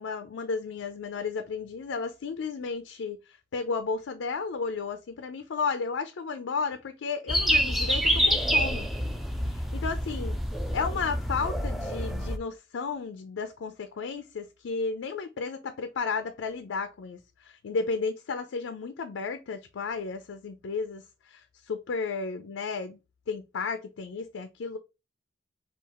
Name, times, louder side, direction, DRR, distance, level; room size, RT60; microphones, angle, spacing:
voice 1, 0.0-3.2 3.5-8.9 9.4-10.4 10.7-21.0 21.3-23.0 23.3-24.8, left 4 dB, 85° left, 0.4 m, -33 dB
sound 1, 7.3-12.4, equal, ahead, 0.3 m, -27 dB
4.2 x 2.4 x 3.8 m
head